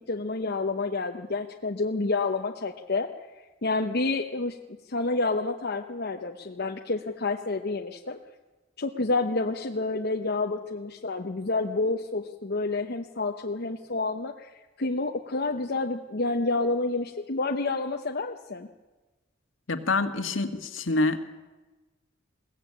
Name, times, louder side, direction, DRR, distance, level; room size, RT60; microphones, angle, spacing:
voice 1, 0.1-3.1 3.6-4.6 4.9-8.2 8.8-18.7, left 3 dB, 55° left, 3 dB, 1.0 m, -29 dB
voice 2, 19.7-21.2, left 3 dB, 75° left, 7 dB, 1.7 m, -26 dB
22.0 x 17.0 x 8.7 m, 1.2 s
head